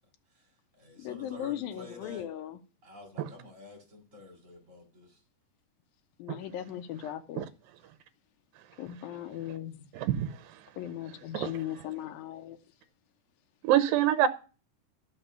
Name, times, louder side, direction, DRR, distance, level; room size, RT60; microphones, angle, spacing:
voice 1, 0.3-2.3 2.8-5.2, left 3 dB, 20° right, 3.8 m, -50 dB
voice 2, 1.0-2.6 6.2-7.5 8.8-9.8 10.8-12.6, left 11 dB, 80° left, 2.7 m, -38 dB
voice 3, 9.9-10.3 11.3-11.5 13.6-14.3, right 11 dB, 80° right, 2.3 m, -25 dB
12.5 x 6.0 x 6.8 m
omnidirectional pair, 4.2 m